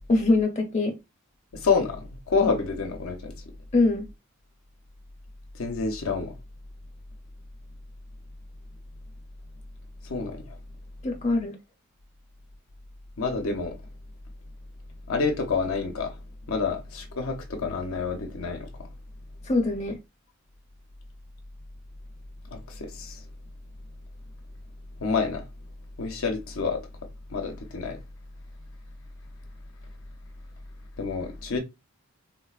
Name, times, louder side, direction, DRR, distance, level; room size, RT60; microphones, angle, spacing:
voice 1, 0.1-1.0 3.7-4.1 11.0-11.5 19.5-20.0, left 2 dB, 30° left, 0.7 m, -23 dB
voice 2, 1.5-3.3 5.6-6.3 10.1-10.5 13.2-13.7 15.1-16.1 16.5-18.7 22.5-23.2 25.0-25.4 26.0-26.8 27.3-28.0 31.0-31.6, left 4 dB, 70° left, 0.6 m, -28 dB
3.7 x 2.1 x 2.3 m
head